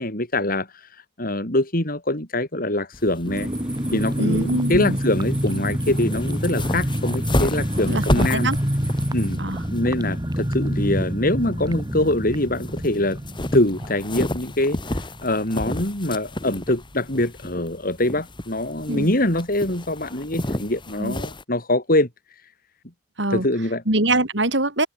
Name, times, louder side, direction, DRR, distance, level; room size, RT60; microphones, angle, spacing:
voice 1, 0.0-3.5 3.9-8.5 9.1-9.4 9.7-13.2 13.5-14.8 15.2-22.1 23.3-23.8, left 1 dB, 50° left, 5.2 m, -24 dB
sound 1, 2.9-21.4, left 1 dB, 25° left, 2.1 m, -32 dB
sound 2, 3.2-15.6 15.9-16.0 16.2-16.5, equal, 20° right, 4.2 m, -27 dB
sound 3, 3.3-9.4, right 1 dB, 5° right, 5.3 m, -40 dB
voice 2, 4.2-5.0 7.8-8.6 9.4-9.6 18.9-19.1 21.0-21.2 23.2-23.5 23.9-24.9, right 2 dB, 70° right, 6.1 m, -23 dB
head